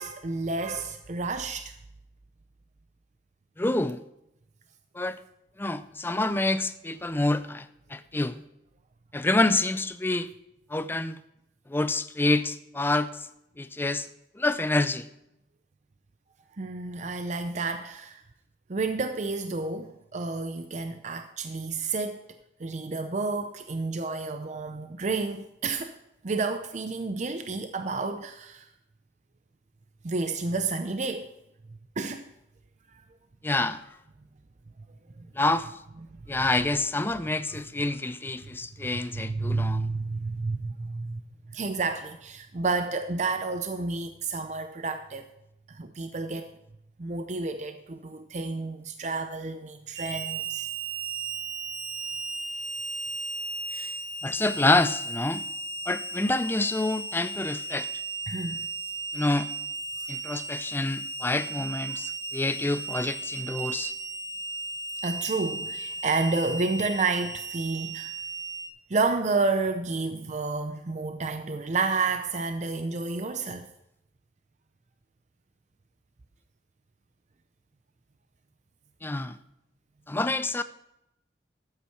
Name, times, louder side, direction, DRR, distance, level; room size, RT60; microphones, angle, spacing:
voice 1, 0.0-1.7 16.6-18.2 18.7-22.2 22.6-25.9 26.2-28.7 30.0-31.3 32.0-32.2 35.2-35.3 39.1-41.2 41.5-45.2 45.7-46.5 47.0-50.7 53.7-53.9 58.3-58.7 60.0-60.1 65.0-68.2 68.9-73.7, right 3 dB, 40° right, 0.5 m, -30 dB
voice 2, 3.6-4.0 4.9-5.2 5.6-8.4 9.1-10.3 10.7-11.2 11.7-13.1 13.6-14.1 14.4-15.1 33.4-33.8 35.4-35.7 36.3-39.9 54.2-55.5 55.9-57.9 59.1-59.5 60.1-63.9 79.0-79.4 80.1-80.6, left 2 dB, 10° left, 0.5 m, -27 dB
Harmonica, 49.9-68.7, right 3 dB, 80° right, 2.2 m, -35 dB
13.0 x 8.3 x 4.7 m
head